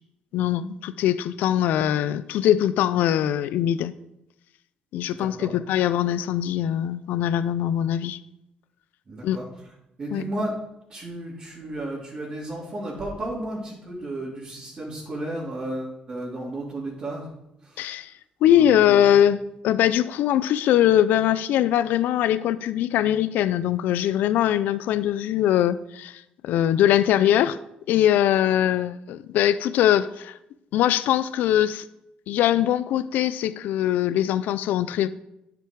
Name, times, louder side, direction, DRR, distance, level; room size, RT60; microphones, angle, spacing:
voice 1, 0.3-3.9 4.9-8.2 9.2-9.4 10.1-10.2 17.8-18.1 18.4-19.4 19.6-27.6 27.9-30.4 30.7-31.8 32.3-35.1, left 11 dB, 85° left, 15 dB, 0.4 m, -22 dB
voice 2, 5.2-5.5 9.1-9.4 10.0-10.6 10.9-17.3 17.6-17.9 18.4-19.1, right 1 dB, 35° right, -7 dB, 3.0 m, -33 dB
10.0 x 5.9 x 4.6 m, 0.84 s
cardioid pair, 105°, 3 cm